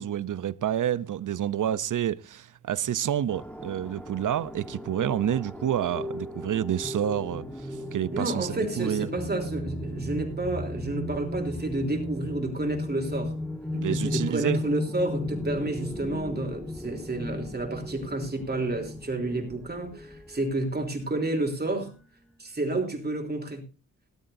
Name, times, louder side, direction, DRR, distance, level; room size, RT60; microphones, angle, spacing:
voice 1, 0.0-7.4 7.9-9.1 13.7-14.6, right 10 dB, 70° right, 0.7 m, -28 dB
sound 1, 3.3-20.5, left 1 dB, 5° left, 1.3 m, -35 dB
voice 2, 8.1-13.3 13.9-21.9 22.4-23.7, right 2 dB, 30° right, 3.3 m, -30 dB
18.5 x 12.0 x 2.6 m
wide cardioid pair, 140°, 32 cm